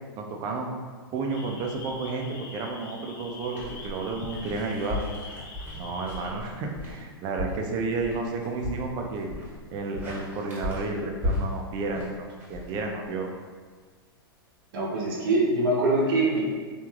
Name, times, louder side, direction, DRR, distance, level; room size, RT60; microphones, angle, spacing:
voice 1, 0.2-0.7 1.1-5.0 5.8-9.3 9.7-13.3, right 3 dB, 35° right, 2 dB, 0.4 m, -31 dB
sound 1, 1.3-6.3, left 4 dB, 55° left, 0.5 m, -43 dB
sound 2, 3.5-13.4, left 1 dB, 15° right, 0.9 m, -36 dB
voice 2, 14.7-16.4, right 2 dB, 60° right, -3 dB, 0.8 m, -23 dB
3.2 x 2.4 x 2.3 m, 1.5 s
hypercardioid pair, 120°, 13 cm